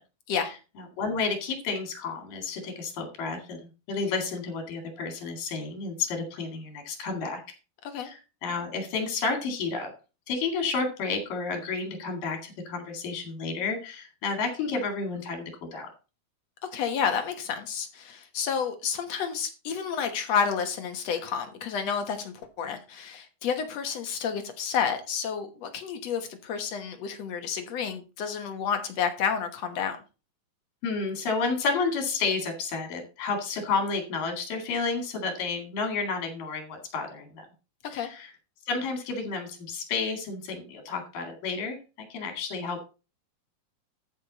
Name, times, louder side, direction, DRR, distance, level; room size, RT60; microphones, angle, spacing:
voice 1, 1.0-7.4 8.0-9.9 10.3-15.9 30.8-37.5 37.8-38.3 38.7-41.8 42.1-42.8, left 4 dB, 80° left, 4.1 m, -31 dB
voice 2, 16.7-30.0 37.9-38.1, left 7 dB, 60° left, 2.1 m, -30 dB
13.0 x 6.3 x 4.1 m
omnidirectional pair, 3.9 m